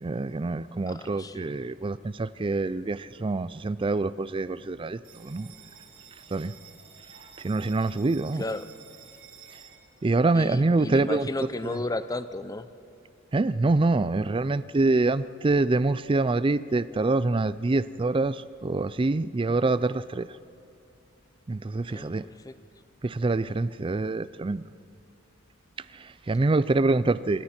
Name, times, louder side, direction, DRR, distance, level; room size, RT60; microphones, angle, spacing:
voice 1, 0.0-5.5 6.3-6.5 7.4-8.4 10.0-11.3 11.6-11.8 13.3-20.3 21.5-22.3 23.0-24.6 25.9-27.4, right 3 dB, 25° right, 16 dB, 0.4 m, -25 dB
voice 2, 0.9-1.6 8.4-8.7 10.3-12.7 21.9-22.5, left 2 dB, 15° left, 12 dB, 0.6 m, -34 dB
Bell, 5.0-12.0, right 7 dB, 70° right, 3.8 m, -52 dB
26.5 x 24.0 x 4.4 m, 2.7 s
head